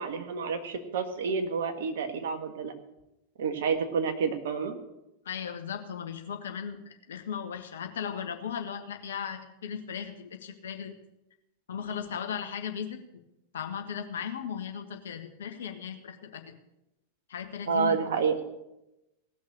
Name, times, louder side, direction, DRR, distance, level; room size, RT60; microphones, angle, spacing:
voice 1, 0.0-2.7 3.4-4.7 17.7-18.3, right 5 dB, 65° right, 6 dB, 1.7 m, -29 dB
voice 2, 5.2-10.9 11.7-13.0 13.5-16.5 17.3-18.0, left 7 dB, 70° left, 6 dB, 1.6 m, -37 dB
17.5 x 6.3 x 8.7 m, 0.92 s
figure-of-eight pair, 90°, 0 cm